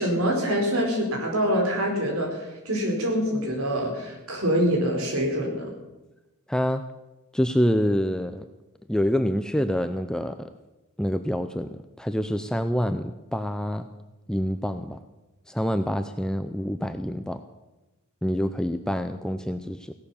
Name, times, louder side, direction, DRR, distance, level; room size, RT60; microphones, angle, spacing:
voice 1, 0.0-5.7, equal, 70° right, 0 dB, 4.6 m, -25 dB
voice 2, 6.5-6.8 7.3-8.5 8.9-10.5 11.0-13.9 14.3-15.0 15.5-17.4 18.2-19.9, equal, 5° left, 8 dB, 0.5 m, -26 dB
16.5 x 11.5 x 7.1 m, 1.0 s
head